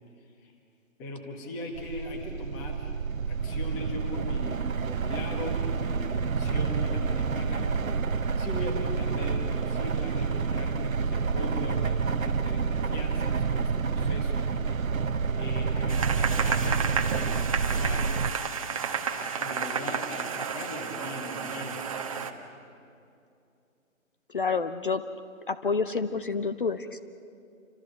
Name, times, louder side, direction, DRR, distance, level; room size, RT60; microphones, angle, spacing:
voice 1, 0.2-0.5 1.0-2.9 3.3-7.7 8.4-14.5 15.3-18.3 19.1-21.8 22.7-22.8, left 2 dB, 10° left, 3 dB, 1.4 m, -39 dB
sound 1, 1.7-18.3, right 5 dB, 80° right, 1.1 m, -28 dB
sound 2, 15.9-22.3, right 6 dB, 25° right, 1.1 m, -32 dB
voice 2, 24.3-25.0 25.5-27.0, left 4 dB, 40° left, 10 dB, 0.8 m, -28 dB
28.5 x 26.0 x 6.7 m, 2.6 s
hypercardioid pair, 165°, 40 cm